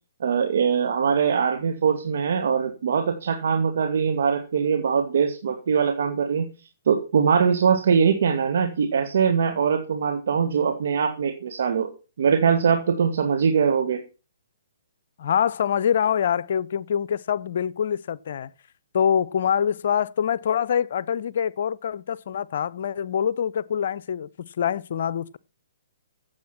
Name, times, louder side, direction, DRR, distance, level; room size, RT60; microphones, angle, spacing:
voice 1, 0.2-6.5 6.9-11.9 12.2-14.0, right 6 dB, 60° right, 2.2 m, -22 dB
voice 2, 15.2-18.5 18.9-25.4, left 8 dB, 55° left, 0.7 m, -25 dB
15.0 x 7.9 x 6.1 m
figure-of-eight pair, 125°, 0 cm